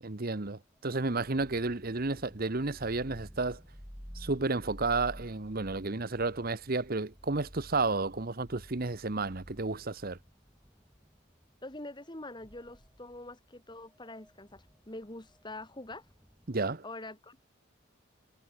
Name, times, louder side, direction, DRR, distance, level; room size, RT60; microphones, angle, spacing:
voice 1, 0.0-3.6 4.1-10.2 16.5-16.8, right 3 dB, 45° right, 1.1 m, -32 dB
sound 1, 0.8-16.7, equal, ahead, 4.3 m, -52 dB
voice 2, 11.6-16.1 16.8-17.4, left 2 dB, 20° left, 2.3 m, -45 dB
head